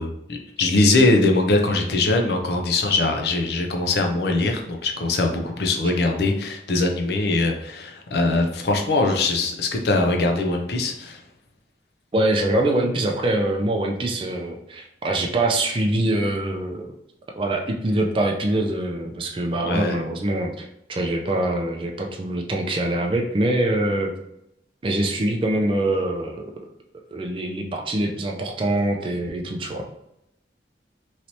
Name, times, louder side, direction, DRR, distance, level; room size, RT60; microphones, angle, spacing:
voice 1, 0.0-11.2 19.6-20.0, left 2 dB, 70° left, 3 dB, 0.5 m, -22 dB
voice 2, 12.1-16.9 17.4-24.1 24.8-26.5 27.1-29.9, right 1 dB, 30° right, 1 dB, 0.4 m, -24 dB
3.1 x 2.9 x 2.7 m, 0.81 s
head